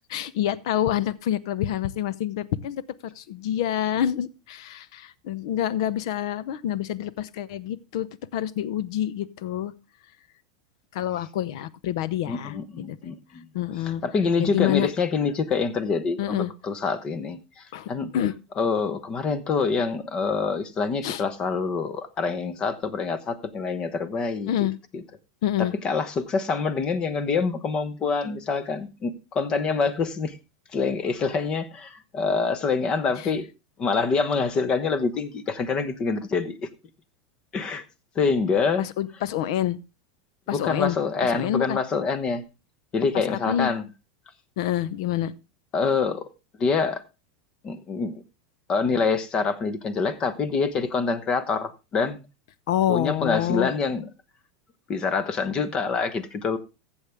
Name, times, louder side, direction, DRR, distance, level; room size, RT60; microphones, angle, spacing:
voice 1, 0.1-2.8 3.2-9.7 10.9-12.6 12.9-13.1 13.5-14.0 14.4-14.9 16.2-16.5 17.7-18.3 21.0-21.2 24.5-24.7 25.4-25.7 33.2-33.4 38.8-39.8 40.5-41.0 41.3-41.8 43.3-43.7 44.6-45.3 52.7-53.7, left 11 dB, 70° left, 0.7 m, -27 dB
voice 2, 12.3-13.5 14.0-18.1 18.6-24.7 24.9-25.0 25.6-30.4 30.7-33.5 33.8-36.7 37.5-37.8 38.1-38.9 40.5-42.4 42.9-43.9 45.7-46.3 46.6-47.0 47.6-48.2 48.7-52.2 52.9-54.1 54.9-56.6, left 4 dB, 30° left, 1.0 m, -26 dB
14.5 x 7.2 x 3.5 m
supercardioid pair, 135°, 3 cm